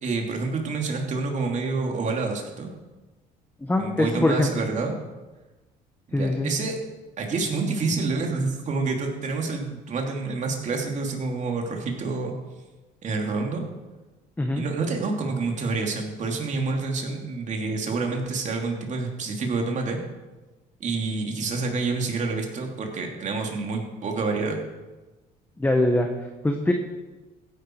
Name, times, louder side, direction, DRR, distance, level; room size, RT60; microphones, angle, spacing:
voice 1, 0.0-2.7 3.8-4.9 6.1-6.8 7.2-12.3 13.0-13.6 14.6-20.0 20.8-24.6, right 3 dB, 45° right, 2 dB, 2.8 m, -28 dB
voice 2, 3.6-4.5 6.1-6.5 14.4-14.6 25.6-26.7, left 1 dB, 10° left, 3 dB, 1.3 m, -23 dB
15.5 x 10.5 x 4.7 m, 1.2 s
cardioid pair, 110°, 17 cm